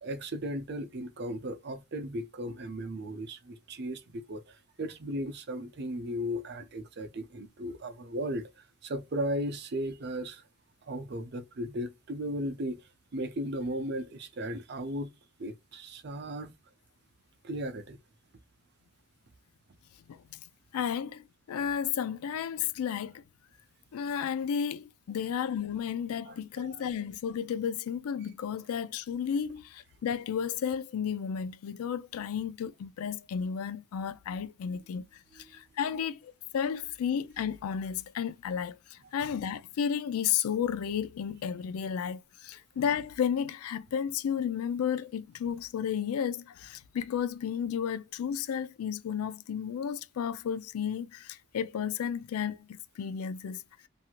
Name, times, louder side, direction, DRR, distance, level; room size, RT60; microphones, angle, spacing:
voice 1, 0.0-10.4 10.8-12.8 13.1-15.1 15.4-16.5 17.4-18.0 26.3-26.8 35.4-35.5, equal, 50° right, 0.5 m, -36 dB
voice 2, 20.7-23.1 23.9-35.1 35.4-53.6, left 8 dB, 85° left, 0.3 m, -33 dB
2.9 x 2.6 x 2.3 m
head